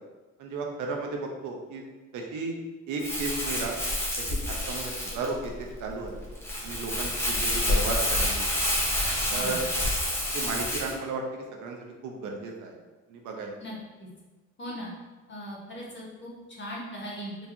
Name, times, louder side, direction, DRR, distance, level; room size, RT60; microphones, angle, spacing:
voice 1, 0.4-1.8 2.1-2.6 2.9-3.7 4.2-6.2 6.6-8.5 9.3-9.6 10.3-11.8 12.0-12.7 13.1-13.6, right 3 dB, 80° right, 1 dB, 0.7 m, -34 dB
Crumpling crinkling, 3.0-10.9, left 1 dB, 10° left, 1.0 m, -28 dB
voice 2, 9.3-9.6 13.6-14.1 14.6-14.9 15.3-17.5, equal, 40° left, -4 dB, 1.4 m, -39 dB
4.7 x 2.6 x 2.7 m, 1.2 s
supercardioid pair, 70°, 30 cm